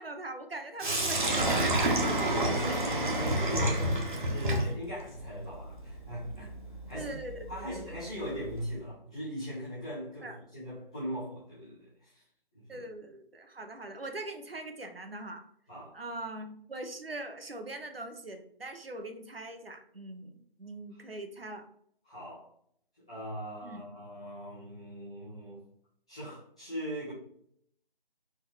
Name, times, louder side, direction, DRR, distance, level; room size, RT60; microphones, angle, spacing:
voice 1, 0.0-2.8 6.9-8.0 10.2-10.4 12.7-15.4 15.9-21.7 23.6-23.8, right 2 dB, 80° right, 5 dB, 1.0 m, -42 dB
Sink (filling or washing), 0.8-8.7, right 1 dB, 55° right, 1.2 m, -30 dB
voice 2, 2.4-6.5 6.9-12.2 12.5-12.9 15.7-16.0 20.9-21.0 22.0-22.5 23.1-25.6 26.1-27.1, equal, 5° left, -14 dB, 0.9 m, -40 dB
4.4 x 3.2 x 3.5 m, 0.66 s
figure-of-eight pair, 165°, 29 cm